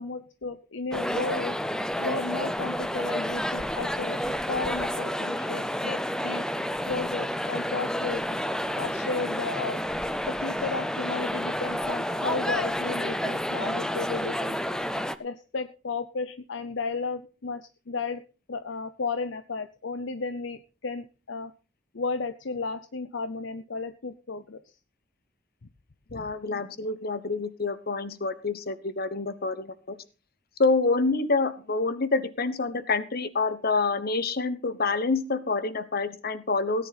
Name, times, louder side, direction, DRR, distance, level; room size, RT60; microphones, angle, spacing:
voice 1, 0.0-1.6 2.0-6.5 6.8-8.2 8.8-9.8 10.2-14.6 15.2-18.2 18.5-21.5 21.9-24.7 26.1-26.3, left 4 dB, 70° left, 11 dB, 0.7 m, -33 dB
sound 1, 0.9-15.1, equal, 5° left, 0.7 m, -30 dB
voice 2, 26.1-30.0 30.6-36.9, left 3 dB, 55° left, 13 dB, 1.2 m, -27 dB
17.5 x 9.9 x 4.1 m, 0.33 s
head